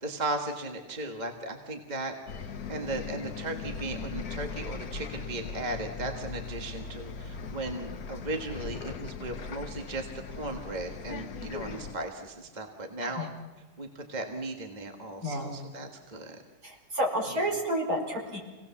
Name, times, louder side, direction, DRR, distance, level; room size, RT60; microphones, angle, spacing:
voice 1, 0.0-13.3 13.8-16.4, right 2 dB, 25° right, 3 dB, 1.7 m, -36 dB
Bus, 2.3-11.9, left 5 dB, 65° left, 1.5 m, -39 dB
voice 2, 15.2-15.5 16.6-18.4, equal, 60° right, 0 dB, 5.1 m, -30 dB
27.0 x 18.5 x 7.2 m, 1.3 s
omnidirectional pair, 1.7 m